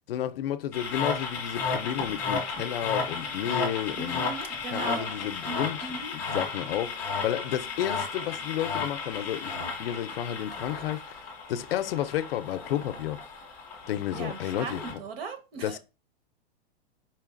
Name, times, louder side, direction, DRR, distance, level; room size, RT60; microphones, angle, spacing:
voice 1, 0.1-4.2 4.7-13.2 13.9-15.0 15.6-15.8, left 11 dB, 65° left, 0.5 m, -32 dB
sound 1, 0.7-14.9, left 4 dB, 5° left, 0.3 m, -34 dB
voice 2, 3.9-5.1 5.5-6.2 14.1-15.8, right 4 dB, 70° right, 1.1 m, -39 dB
4.4 x 3.2 x 2.4 m
supercardioid pair, 175°, 31 cm